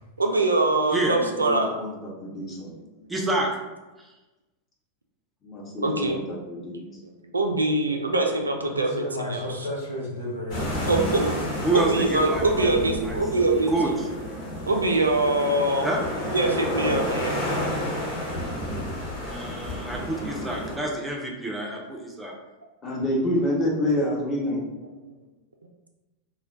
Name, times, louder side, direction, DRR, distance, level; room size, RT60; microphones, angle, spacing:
voice 1, 0.2-1.7 3.0-3.1 5.8-6.2 6.7-9.5 10.9-11.3 11.7-13.7 14.7-15.9 16.3-17.4 25.0-25.1, right 2 dB, 80° right, 3 dB, 0.3 m, -23 dB
voice 2, 1.1-2.7 5.4-6.8 22.8-24.6, left 1 dB, 25° left, -4 dB, 0.8 m, -28 dB
voice 3, 3.1-3.5 11.6-13.9 15.8-16.0 19.2-22.3, right 2 dB, 10° right, -2 dB, 0.4 m, -28 dB
voice 4, 8.7-10.9, left 1 dB, 65° left, -4 dB, 0.8 m, -33 dB
sound 1, 10.5-20.8, equal, 45° left, 1.1 m, -31 dB
2.2 x 2.1 x 3.5 m, 1.1 s
figure-of-eight pair, 90°, 0 cm